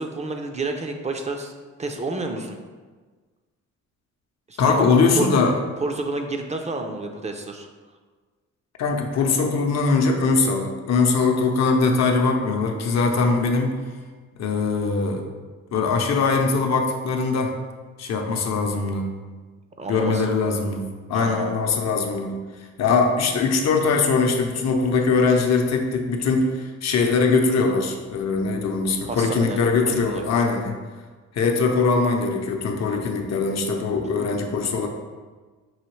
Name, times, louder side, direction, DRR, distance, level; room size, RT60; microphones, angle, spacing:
voice 1, 0.0-1.5 1.8-2.6 4.5-4.9 5.2-5.3 5.8-7.7 19.8-20.3 21.1-21.6 29.0-30.4, right 2 dB, 25° right, 4 dB, 0.4 m, -30 dB
voice 2, 4.6-5.5 8.8-13.7 14.4-15.3 15.7-17.5 18.0-19.1 19.9-22.4 22.8-30.7 31.3-34.9, left 4 dB, 60° left, 3 dB, 0.7 m, -21 dB
5.6 x 2.8 x 3.1 m, 1.4 s
cardioid pair, 90°, 30 cm